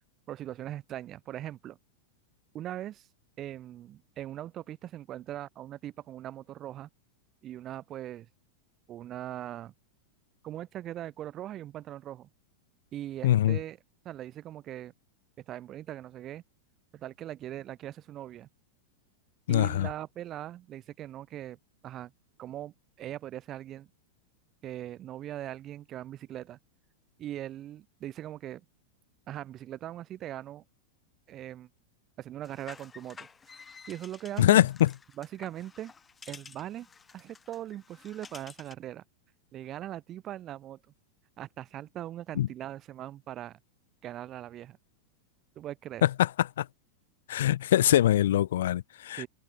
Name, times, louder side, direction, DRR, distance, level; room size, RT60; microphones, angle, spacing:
voice 1, 0.3-1.8 2.5-3.1 3.4-6.9 7.4-8.3 8.9-9.7 10.4-12.3 12.9-13.8 14.0-14.9 15.4-16.4 16.9-18.5 19.5-21.6 21.8-22.1 22.4-23.9 24.6-26.6 27.2-28.6 29.3-30.6 31.3-31.7 32.2-34.7 35.2-35.9 36.3-36.9 37.1-39.0 39.5-40.8 41.4-43.6 44.0-44.8 45.5-46.0 49.2-49.3, right 12 dB, 30° right, 1.6 m, -40 dB
voice 2, 13.2-13.6 19.5-19.9 34.4-34.9 42.4-42.5 46.0-46.3 46.6-46.7 47.3-49.2, left 12 dB, 60° left, 0.3 m, -23 dB
sound 1, 32.4-38.9, left 5 dB, 15° left, 1.0 m, -51 dB
figure-of-eight pair, 90°, 0 cm